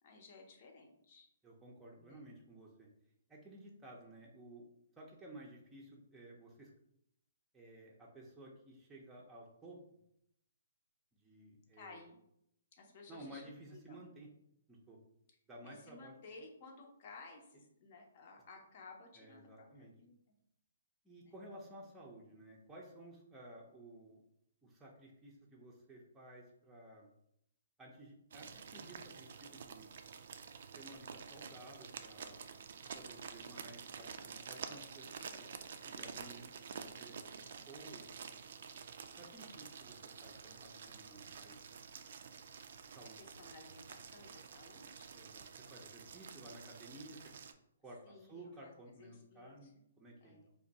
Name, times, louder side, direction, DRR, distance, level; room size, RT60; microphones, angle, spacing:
voice 1, 0.0-1.3 2.0-2.3 11.7-12.2 12.8-14.0 15.6-20.1 21.2-21.3 43.0-45.2 48.0-48.7 49.0-49.7 50.2-50.5, left 3 dB, 45° left, 1 dB, 0.8 m, -56 dB
voice 2, 1.4-2.9 3.3-6.7 7.5-10.0 11.1-12.0 13.1-14.3 14.7-15.0 15.5-16.2 19.2-19.9 21.0-24.2 24.6-27.1 27.8-29.9 30.8-32.4 32.9-35.6 35.9-37.2 37.7-38.1 39.1-41.6 42.9-43.2 45.1-47.3 47.8-50.5, right 1 dB, 10° right, -4 dB, 0.6 m, -55 dB
sound 1, 28.3-47.5, right 6 dB, 60° right, 0.3 m, -50 dB
2.5 x 2.3 x 3.9 m, 0.74 s
hypercardioid pair, 140°, 0 cm